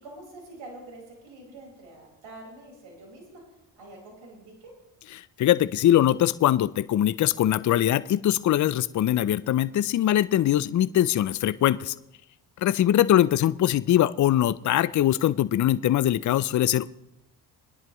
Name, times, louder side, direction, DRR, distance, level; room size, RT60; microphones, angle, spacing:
voice 1, 0.0-4.7 12.8-13.2, right 2 dB, 65° right, 0 dB, 5.2 m, -46 dB
voice 2, 5.2-11.9 12.6-16.9, left 12 dB, 40° left, 17 dB, 0.5 m, -22 dB
22.5 x 10.5 x 3.1 m, 0.85 s
hypercardioid pair, 55°, 49 cm